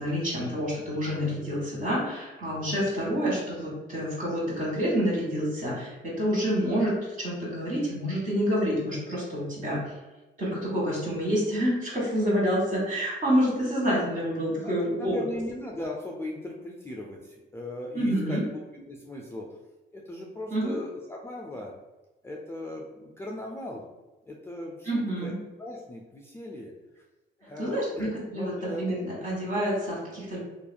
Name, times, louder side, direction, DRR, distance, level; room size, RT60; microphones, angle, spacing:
voice 1, 0.0-9.8 10.4-15.2 17.9-18.4 20.5-20.8 24.8-25.4 27.4-30.4, equal, 40° right, -5 dB, 1.4 m, -28 dB
voice 2, 14.6-19.5 19.9-21.7 22.2-23.8 24.3-25.3 25.6-26.7 27.4-28.8 29.1-29.5, left 1 dB, 10° left, -2 dB, 0.3 m, -38 dB
2.7 x 2.4 x 2.2 m, 1.1 s
cardioid pair, 90°, 20 cm